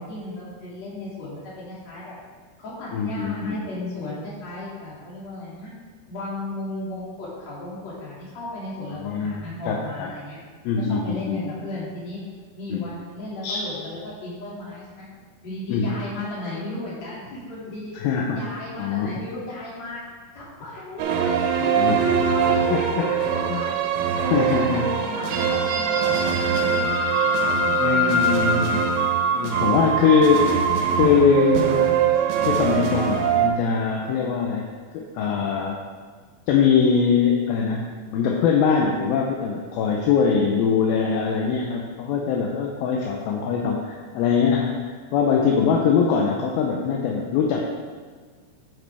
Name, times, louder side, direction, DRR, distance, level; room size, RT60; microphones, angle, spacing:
voice 1, 0.0-2.1 2.6-5.7 6.1-10.4 10.8-12.2 12.5-15.1 15.4-17.9 18.3-20.0 20.3-23.8 24.2-28.2, left 2 dB, 45° left, -7 dB, 3.3 m, -35 dB
voice 2, 2.9-3.6 8.9-10.1 10.7-11.4 12.7-12.9 13.4-13.6 15.7-15.9 17.9-18.5 18.8-19.1 21.6-22.0 22.7-23.1 23.5-23.6 24.2-24.9 27.8-28.8 29.3-30.6 31.0-31.8 32.4-34.7 34.9-35.8 36.5-44.8 45.1-47.6, left 6 dB, 75° left, 0 dB, 2.3 m, -22 dB
sound 1, 21.0-33.5, right 5 dB, 80° right, 2.6 m, -22 dB
9.1 x 8.2 x 3.5 m, 1.5 s
omnidirectional pair, 4.8 m